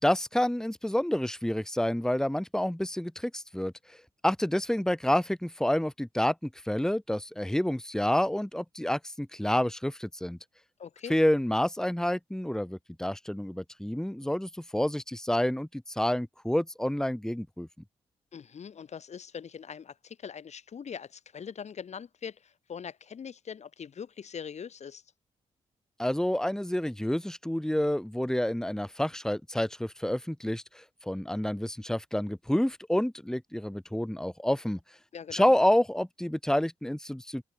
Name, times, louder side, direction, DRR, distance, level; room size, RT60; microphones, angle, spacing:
voice 1, 0.0-4.0 4.2-10.4 11.1-17.7 26.0-34.8 35.3-37.4, left 1 dB, 5° left, 2.5 m, -28 dB
voice 2, 10.8-11.2 18.3-25.0 35.1-35.5, left 7 dB, 60° left, 3.9 m, -42 dB
open air
cardioid pair, 60°, 13 cm